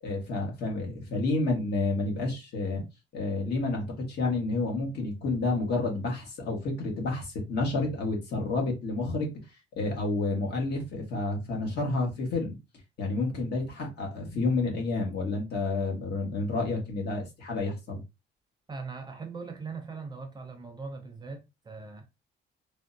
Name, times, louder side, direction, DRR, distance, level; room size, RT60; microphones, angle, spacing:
voice 1, 0.0-2.8 3.1-9.3 9.7-12.6 13.0-18.0, left 3 dB, 55° left, 1.2 m, -30 dB
voice 2, 18.7-22.1, right 4 dB, 20° right, 0.4 m, -40 dB
3.5 x 2.1 x 2.5 m
cardioid pair, 165°, 20 cm